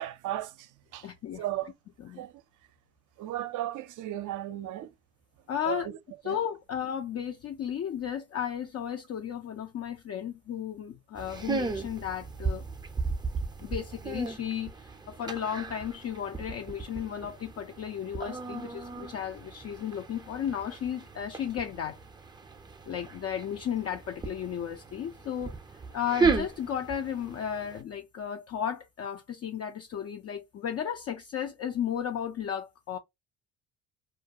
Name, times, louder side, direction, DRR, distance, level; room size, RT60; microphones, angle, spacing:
voice 1, 0.0-1.1 1.4-1.7 2.2-2.3 3.2-4.9 5.6-6.0 6.2-6.4, right 14 dB, 60° right, 0.5 m, -35 dB
voice 2, 1.0-1.4 2.0-2.2 5.5-5.9 6.2-12.6 13.6-22.0 22.9-25.5 25.9-33.0, left 9 dB, 45° left, 0.4 m, -34 dB
sound 1, 11.1-27.8, right 4 dB, 10° right, 0.5 m, -35 dB
2.4 x 2.2 x 2.7 m
supercardioid pair, 70°, 36 cm